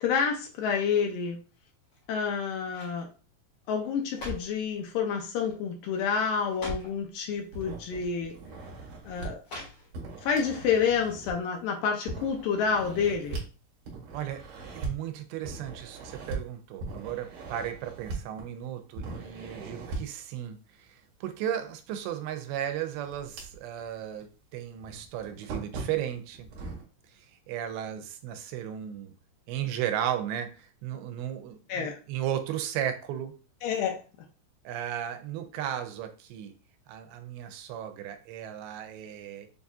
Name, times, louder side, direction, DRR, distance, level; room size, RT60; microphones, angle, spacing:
voice 1, 0.0-1.4 2.1-3.1 3.7-8.3 9.1-9.4 10.2-13.4 31.7-32.0 33.6-34.0, left 6 dB, 75° left, 2 dB, 2.2 m, -28 dB
sound 1, 1.8-2.3 2.7-3.0 3.8-4.6 5.4-5.7 6.0-6.1 6.4-7.0 8.0-8.1 9.4-10.2 10.6-10.7, left 1 dB, 50° left, 1.6 m, -41 dB
sound 2, 7.5-9.3 9.9-11.6 12.1-13.5 13.9-14.9 15.4-16.4 16.8-18.6 18.9-20.2 22.1-22.2 22.7-23.9 24.2-24.3 24.8-26.8, right 3 dB, 70° right, 2.4 m, -40 dB
voice 2, 14.8-26.5 27.1-29.1 29.5-33.3 34.7-36.5 36.9-39.5, right 10 dB, 90° right, 7 dB, 2.5 m, -35 dB
7.1 x 2.7 x 2.3 m, 0.35 s
omnidirectional pair, 4.4 m